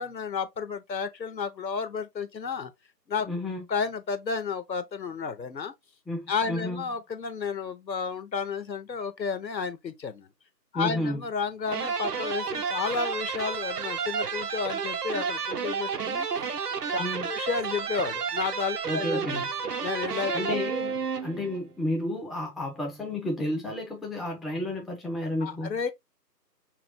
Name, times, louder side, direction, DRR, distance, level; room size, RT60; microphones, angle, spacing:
voice 1, 0.0-2.7 3.1-3.3 3.7-5.7 6.3-10.3 10.7-16.3 16.9-19.4 19.8-20.4 25.4-25.9, left 5 dB, 80° left, 0.9 m, -32 dB
voice 2, 3.2-3.6 6.1-6.8 10.7-11.2 17.0-17.3 18.8-19.5 20.3-21.0 21.2-25.7, left 1 dB, ahead, 0.4 m, -31 dB
sound 1, 11.7-21.6, right 6 dB, 65° right, 0.7 m, -31 dB
3.7 x 3.0 x 2.6 m
figure-of-eight pair, 155°, 50 cm